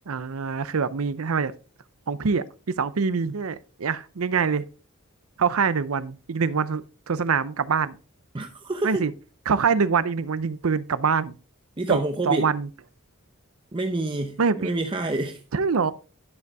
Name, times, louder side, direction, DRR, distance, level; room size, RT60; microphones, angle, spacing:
voice 1, 0.1-1.5 2.1-4.6 5.4-8.0 8.8-9.1 9.5-11.3 11.9-12.0 12.2-12.7 14.4-14.7 15.5-15.9, right 5 dB, 80° right, 0.6 m, -24 dB
voice 2, 8.3-9.0 11.8-12.5 13.7-15.4, right 2 dB, 25° right, 0.7 m, -27 dB
11.0 x 6.7 x 3.5 m
head